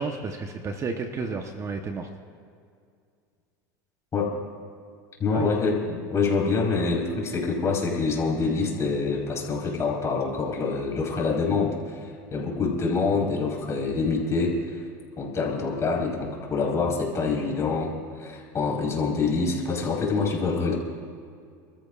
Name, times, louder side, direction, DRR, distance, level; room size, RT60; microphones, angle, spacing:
voice 1, 0.0-2.1 5.3-5.5, right 4 dB, 30° right, 5 dB, 1.1 m, -31 dB
voice 2, 5.2-14.8 15.2-20.7, left 4 dB, 30° left, -2 dB, 4.5 m, -26 dB
29.0 x 14.0 x 2.5 m, 2.3 s
supercardioid pair, 110°, 10 cm